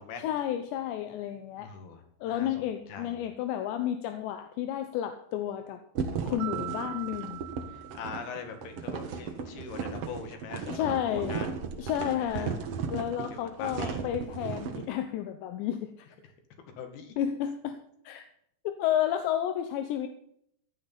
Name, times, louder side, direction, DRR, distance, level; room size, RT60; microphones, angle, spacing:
voice 1, 0.2-1.7 2.2-5.8 6.3-7.4 10.7-11.4 11.8-12.6 12.9-16.1 17.2-17.8 18.0-18.2 18.6-20.1, left 11 dB, 85° left, 7 dB, 3.2 m, -31 dB
voice 2, 1.6-2.5 2.9-3.3 7.9-11.5 12.2-12.5 13.6-14.0 16.8-17.1, left 5 dB, 65° left, 6 dB, 4.0 m, -41 dB
sound 1, 5.9-14.9, right 6 dB, 90° right, 1.3 m, -36 dB
Mallet percussion, 6.4-8.8, right 17 dB, 70° right, 2.7 m, -41 dB
15.5 x 12.0 x 4.2 m, 0.70 s
omnidirectional pair, 5.0 m